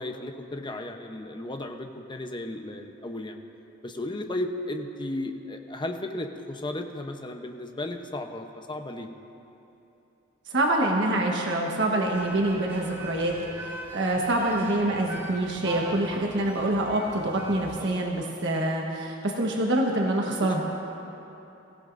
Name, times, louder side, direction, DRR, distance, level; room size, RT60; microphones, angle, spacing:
voice 1, 0.0-3.4 3.8-9.1 20.4-20.6, left 1 dB, 25° left, 4 dB, 0.9 m, -34 dB
voice 2, 10.5-13.3 13.9-20.6, right 1 dB, 65° right, -1 dB, 1.3 m, -26 dB
sound 1, 12.1-17.9, right 2 dB, 15° right, 2.5 m, -41 dB
24.0 x 16.0 x 2.6 m, 2.9 s
head